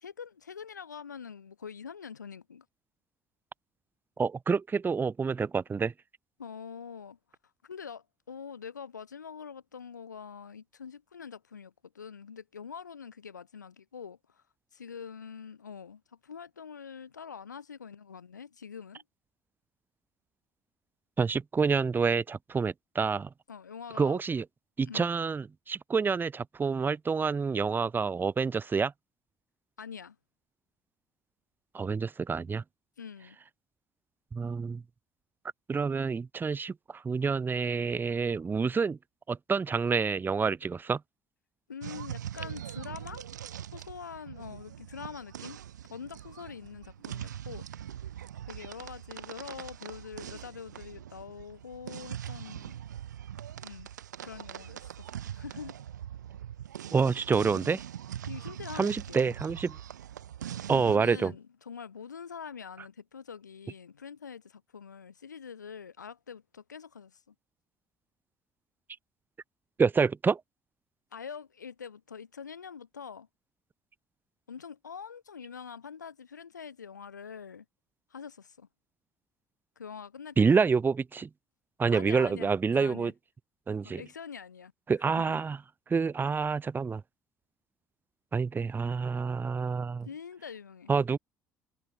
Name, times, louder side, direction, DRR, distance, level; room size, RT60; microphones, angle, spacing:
voice 1, 0.0-2.6 6.4-7.2 7.6-14.4 14.7-19.0 23.5-24.2 24.9-25.1 29.8-30.2 33.0-33.4 41.7-43.3 43.7-45.6 45.9-47.7 48.5-52.7 53.6-53.9 54.2-55.8 58.3-59.2 60.7-67.3 71.1-73.3 74.5-77.6 78.1-78.7 79.8-80.6 81.9-83.1 83.8-84.7 85.0-85.4 90.0-90.9, left 6 dB, 90° left, 1.2 m, -44 dB
voice 2, 4.2-5.9 21.2-23.3 24.0-24.4 24.8-28.9 31.7-32.6 34.3-34.8 35.7-39.0 39.3-41.0 56.9-57.8 58.7-59.8 60.7-61.3 69.8-70.4 80.4-81.3 81.8-83.1 83.7-84.0 84.9-85.6 85.9-87.0 88.3-90.1 90.9-91.2, right 5 dB, 20° right, 0.4 m, -28 dB
sound 1, 41.8-61.0, right 10 dB, 85° right, 0.4 m, -42 dB
figure-of-eight pair, 55°, 9 cm